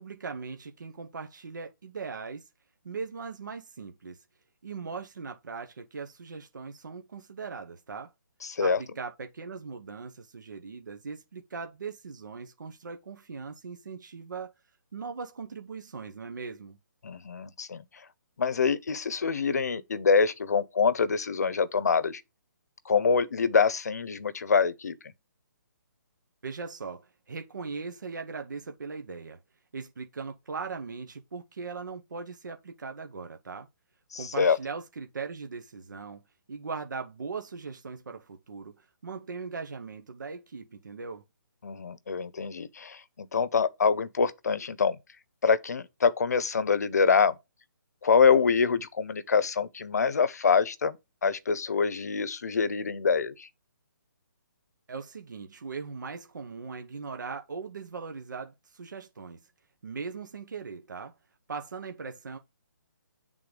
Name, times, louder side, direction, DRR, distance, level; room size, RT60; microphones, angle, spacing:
voice 1, 0.0-2.4 2.8-4.2 4.6-8.1 8.6-14.5 14.9-16.8 26.4-29.4 29.7-33.7 34.2-36.2 36.5-41.2 54.9-59.4 59.8-61.1 61.5-62.4, right 5 dB, 65° right, 0.9 m, -39 dB
voice 2, 8.4-8.8 17.0-17.8 18.4-22.2 22.9-24.9 34.1-34.6 41.6-45.0 45.4-47.4 48.0-53.5, left 5 dB, 55° left, 0.8 m, -25 dB
7.9 x 3.7 x 5.0 m
hypercardioid pair, 180°, 11 cm